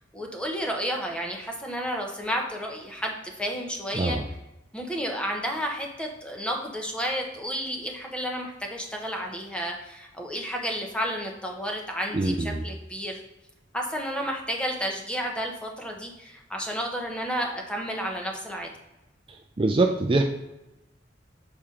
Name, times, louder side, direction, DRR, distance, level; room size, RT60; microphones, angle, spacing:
voice 1, 0.1-4.2 4.7-13.2 13.7-18.7, equal, 5° left, 1 dB, 0.8 m, -31 dB
voice 2, 12.1-12.6 19.3-20.2, right 2 dB, 30° right, 3 dB, 0.4 m, -24 dB
6.8 x 4.2 x 3.7 m, 0.98 s
head